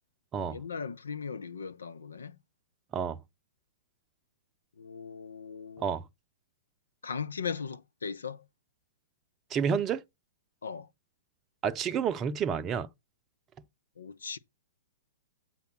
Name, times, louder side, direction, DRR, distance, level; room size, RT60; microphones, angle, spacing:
voice 1, 0.5-2.4 4.8-5.9 7.0-8.4 10.6-10.9 14.0-14.4, left 6 dB, 80° left, 0.7 m, -38 dB
voice 2, 9.5-10.0 11.6-12.9, right 7 dB, 25° right, 0.6 m, -29 dB
8.3 x 4.1 x 5.9 m
hypercardioid pair, 115°, 0 cm